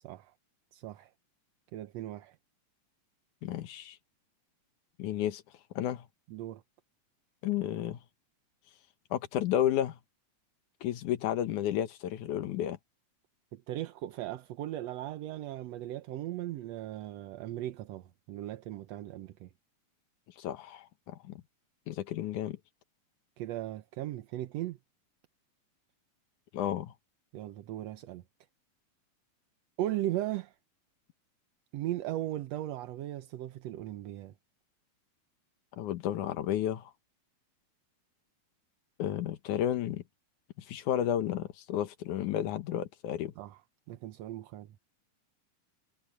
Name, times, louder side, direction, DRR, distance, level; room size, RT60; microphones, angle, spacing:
voice 1, 0.7-1.1 1.7-2.4 6.3-6.6 13.5-19.5 23.4-24.8 27.3-28.2 29.8-30.6 31.7-34.3 43.4-43.6 43.9-44.8, right 14 dB, 70° right, 1.8 m, -37 dB
voice 2, 3.4-4.0 5.0-5.4 5.8-6.1 7.4-8.0 9.1-10.0 10.8-12.8 20.4-21.4 21.9-22.6 26.5-26.9 35.8-36.9 39.0-40.0 40.6-43.3, left 11 dB, 85° left, 2.6 m, -32 dB
omnidirectional pair, 3.5 m